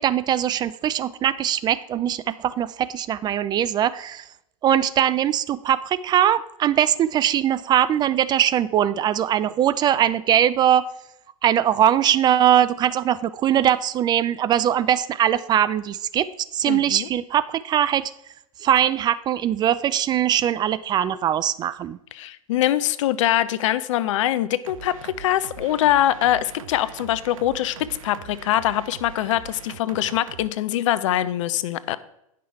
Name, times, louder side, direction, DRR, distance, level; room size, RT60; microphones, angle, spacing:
voice 1, 0.0-4.3 4.6-10.9 11.4-16.3 16.5-18.1 18.6-22.0, right 10 dB, 25° right, 16 dB, 0.3 m, -21 dB
voice 2, 16.7-17.1 22.1-32.0, left 13 dB, 60° left, 16 dB, 0.6 m, -23 dB
sound 1, 24.7-30.5, right 9 dB, 75° right, 0.5 m, -42 dB
10.0 x 5.9 x 4.7 m, 0.81 s
hypercardioid pair, 105°, 18 cm